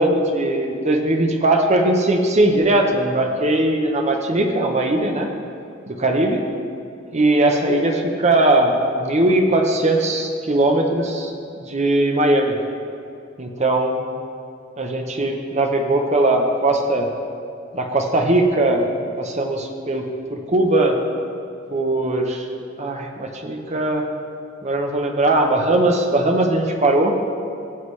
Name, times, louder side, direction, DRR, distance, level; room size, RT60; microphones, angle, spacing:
voice 1, 0.0-5.3 5.9-6.4 7.1-11.3 11.6-12.5 13.4-14.0 14.8-17.1 17.7-18.8 19.2-20.0 20.3-21.0 21.7-22.4 22.8-24.1 24.6-27.1, right 2 dB, 35° right, 3 dB, 0.9 m, -19 dB
17.0 x 7.9 x 3.3 m, 2.6 s
head